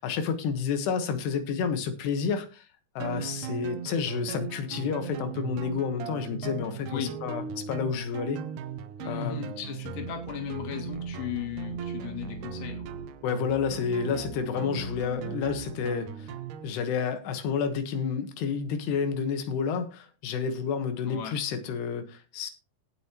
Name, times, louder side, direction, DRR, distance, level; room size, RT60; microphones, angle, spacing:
voice 1, 0.0-2.7 3.0-8.4 9.1-9.4 13.2-16.3 16.6-22.5, left 6 dB, 80° left, 3.4 m, -30 dB
sound 1, 3.0-16.7, right 7 dB, 80° right, 1.8 m, -38 dB
voice 2, 9.0-12.9 21.1-21.4, left 9 dB, 60° left, 3.2 m, -36 dB
18.0 x 6.3 x 2.9 m
omnidirectional pair, 4.8 m